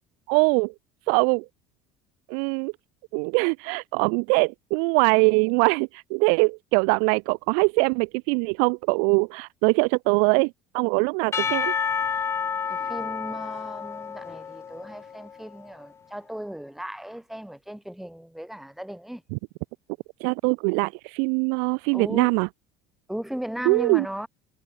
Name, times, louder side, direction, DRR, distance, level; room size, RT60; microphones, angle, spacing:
voice 1, 0.3-0.7 1.1-1.4 2.3-2.7 3.1-11.7 19.3-19.4 20.2-22.5 23.6-24.1, right 40 dB or more, 80° right, 1.2 m, -22 dB
Percussion / Church bell, 11.3-15.5, left 6 dB, 20° left, 0.5 m, -29 dB
voice 2, 12.7-19.2 21.9-22.3 23.1-24.3, right 1 dB, ahead, 0.8 m, -36 dB
cardioid pair, 165°, 15 cm